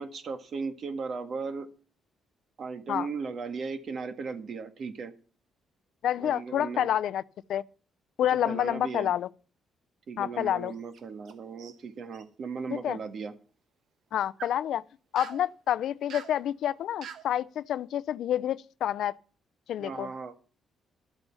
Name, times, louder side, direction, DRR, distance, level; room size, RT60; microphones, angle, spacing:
voice 1, 0.0-1.7 2.6-5.1 6.2-6.9 8.4-9.1 10.1-13.3 19.8-20.3, right 4 dB, 55° right, 1.8 m, -36 dB
voice 2, 6.0-7.2 7.5-7.6 8.2-9.3 10.2-10.7 12.7-13.0 14.1-14.8 15.1-19.2 19.7-20.1, left 11 dB, 75° left, 0.5 m, -28 dB
sound 1, 10.7-11.3 11.6-12.2 14.1-14.6 15.2-15.4 16.1-16.4 17.0-17.3, right 8 dB, 70° right, 1.2 m, -44 dB
12.5 x 8.1 x 7.1 m
cardioid pair, 90°, 0 cm